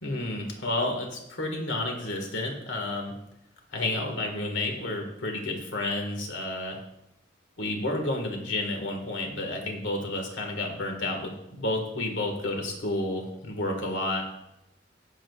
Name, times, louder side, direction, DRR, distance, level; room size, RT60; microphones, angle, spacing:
voice 1, 0.0-3.1 3.7-6.8 7.6-14.2, left 2 dB, 80° left, 2 dB, 1.7 m, -31 dB
19.0 x 7.4 x 2.4 m, 0.84 s
head